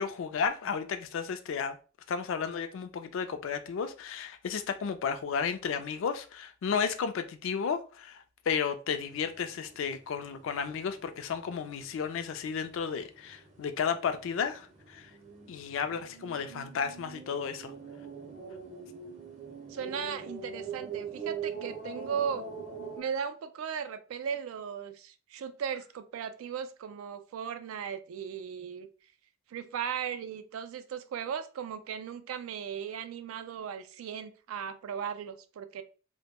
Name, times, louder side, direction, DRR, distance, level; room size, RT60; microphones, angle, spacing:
voice 1, 0.0-1.8 2.1-15.1 15.5-17.7, left 6 dB, 70° left, 0.3 m, -33 dB
sound 1, 8.9-23.0, right 5 dB, 35° right, 0.5 m, -44 dB
voice 2, 19.7-22.4 23.0-28.9 29.5-35.8, right 7 dB, 90° right, 0.3 m, -37 dB
2.1 x 2.1 x 2.8 m
head